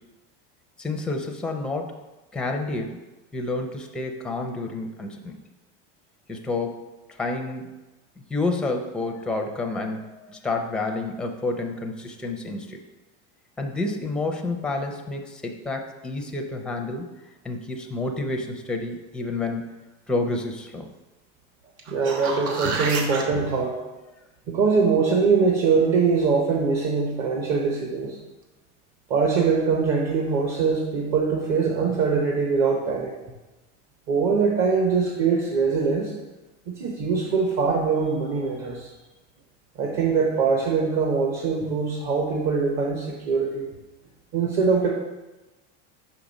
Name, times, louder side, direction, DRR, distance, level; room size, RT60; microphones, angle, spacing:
voice 1, 0.8-1.9 2.3-3.0 3.3-5.4 6.3-6.8 7.1-7.7 8.3-12.8 13.6-17.1 17.4-19.6 20.1-20.9, left 2 dB, 5° left, 3 dB, 0.5 m, -29 dB
sound 1, 21.8-23.2 28.0-28.1, right 4 dB, 85° right, 1.1 m, -29 dB
voice 2, 21.9-23.8 24.5-28.2 29.1-33.1 34.1-36.1 36.7-38.9 39.8-43.7 44.3-44.9, right 5 dB, 50° right, -1 dB, 1.0 m, -22 dB
5.5 x 5.1 x 4.1 m, 1.1 s
supercardioid pair, 135°, 37 cm